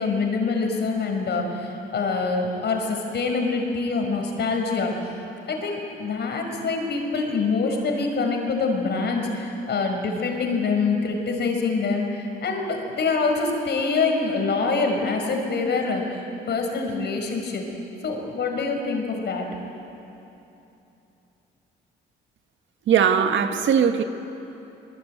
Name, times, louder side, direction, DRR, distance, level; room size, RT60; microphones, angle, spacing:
voice 1, 0.0-4.9 5.5-17.6 18.0-19.5, left 4 dB, 60° left, 5.3 m, -25 dB
voice 2, 22.9-24.0, right 7 dB, 70° right, 1.7 m, -19 dB
23.0 x 22.0 x 8.9 m
cardioid pair, 90°, 20 cm